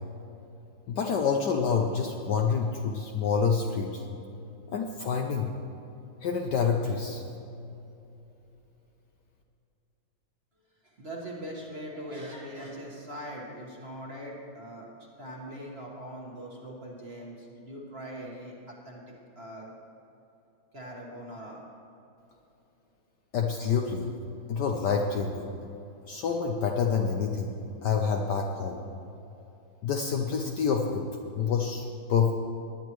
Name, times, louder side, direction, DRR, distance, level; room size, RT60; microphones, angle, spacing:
voice 1, 0.9-4.0 4.7-5.5 6.2-7.2 23.3-24.1 24.5-25.4 26.1-27.5 27.8-28.8 29.8-31.0 31.3-32.3, left 6 dB, 65° left, 2 dB, 1.1 m, -27 dB
voice 2, 10.8-19.0 19.3-19.7 20.7-21.6, equal, 30° right, -2 dB, 1.6 m, -41 dB
19.5 x 10.0 x 3.1 m, 2.8 s
omnidirectional pair, 2.3 m